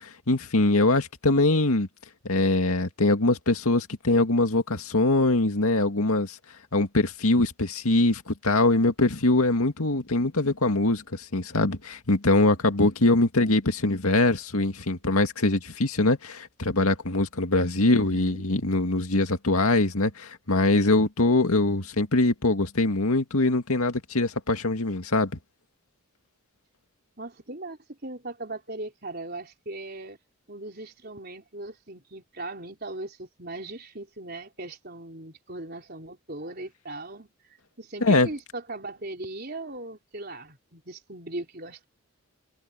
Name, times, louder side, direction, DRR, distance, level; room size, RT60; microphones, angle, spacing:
voice 1, 0.0-1.9 2.2-6.4 6.7-25.3 38.0-38.3, left 2 dB, 85° left, 2.2 m, -23 dB
voice 2, 17.8-18.4 27.2-30.2 30.5-37.3 37.8-41.9, right 2 dB, 45° right, 4.2 m, -38 dB
head